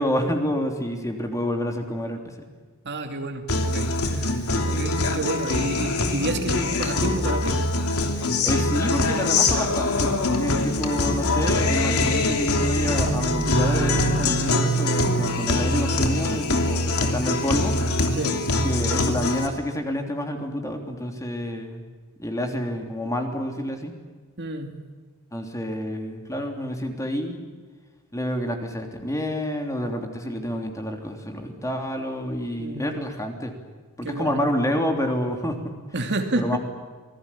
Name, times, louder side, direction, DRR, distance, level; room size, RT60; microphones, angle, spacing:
voice 1, 0.0-2.4 8.1-17.7 18.6-21.8 22.2-23.9 25.3-27.4 28.1-33.5 34.0-35.8 36.4-36.6, equal, 15° left, 3 dB, 3.2 m, -28 dB
voice 2, 2.8-7.6 12.1-12.2 18.1-18.4 24.4-24.7 32.6-32.9 34.0-34.4 35.9-36.6, right 2 dB, 50° right, 5 dB, 2.7 m, -30 dB
Guitar, 3.5-19.5, left 2 dB, 75° left, 3.1 m, -23 dB
sound 1, 10.7-15.4, right 1 dB, 70° right, 1.6 m, -33 dB
27.5 x 20.0 x 8.7 m, 1.5 s
head